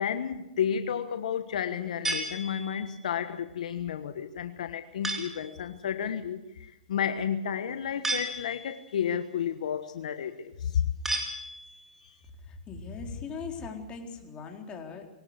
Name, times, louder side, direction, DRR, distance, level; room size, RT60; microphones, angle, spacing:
voice 1, 0.0-10.9 12.0-12.1, left 8 dB, 70° left, 9 dB, 1.3 m, -32 dB
sound 1, 2.0-3.0 5.0-5.5 8.0-8.9 11.0-11.9, right 1 dB, 10° right, 3.8 m, -34 dB
voice 2, 12.4-15.1, left 5 dB, 25° left, 3 dB, 4.1 m, -39 dB
22.5 x 18.5 x 8.2 m, 0.91 s
hypercardioid pair, 125°, 4 cm